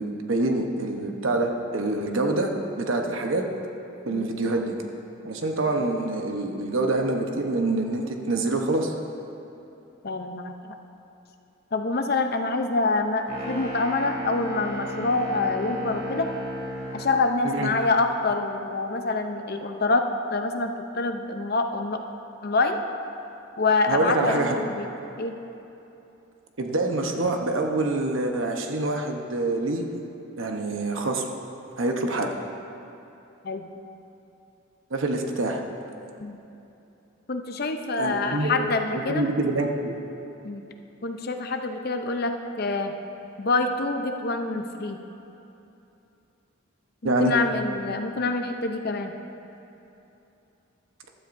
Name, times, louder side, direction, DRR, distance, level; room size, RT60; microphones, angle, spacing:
voice 1, 0.0-2.5 2.7-3.4 4.0-4.7 5.2-8.9 17.4-17.7 23.9-24.6 26.6-29.9 30.4-31.3 31.8-32.3 34.9-35.6 38.0-38.7 38.9-39.9 47.0-47.3, right 2 dB, 75° right, 3 dB, 1.0 m, -26 dB
voice 2, 10.0-10.5 11.7-16.3 16.9-22.0 22.4-22.8 23.6-24.9 25.2-25.4 33.4-33.7 36.2-36.4 37.3-39.2 40.4-40.6 41.0-42.9 43.4-45.0 47.0-49.1, left 3 dB, 50° left, 5 dB, 0.6 m, -26 dB
sound 1, 13.3-17.2, equal, 45° right, 2.5 m, -34 dB
15.0 x 12.5 x 2.6 m, 2.9 s
head